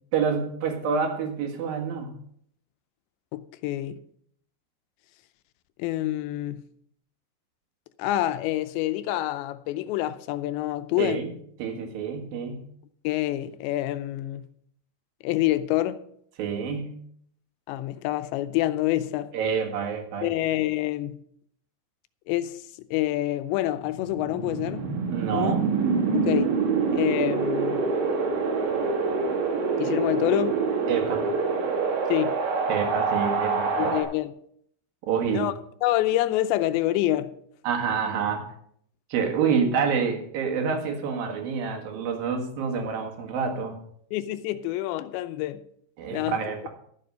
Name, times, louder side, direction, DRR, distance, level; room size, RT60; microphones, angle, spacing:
voice 1, 0.1-2.1 11.0-11.3 11.6-12.6 16.4-17.0 19.3-20.3 25.1-25.7 30.9-31.3 32.7-34.0 35.1-35.5 37.6-38.5 39.1-43.8 46.0-46.7, right 6 dB, 60° right, 3.2 m, -27 dB
voice 2, 3.3-4.0 5.8-6.6 8.0-11.2 13.0-14.5 15.2-16.0 17.7-19.3 20.2-21.2 22.3-24.8 25.3-25.6 26.1-26.5 26.9-27.8 29.7-30.5 32.1-32.3 33.8-34.3 35.3-35.5 35.8-37.3 44.1-45.6 46.1-46.7, left 15 dB, 90° left, 3.0 m, -27 dB
Wind, 23.8-34.0, right 4 dB, 85° right, 4.4 m, -26 dB
13.0 x 7.7 x 5.5 m
omnidirectional pair, 5.0 m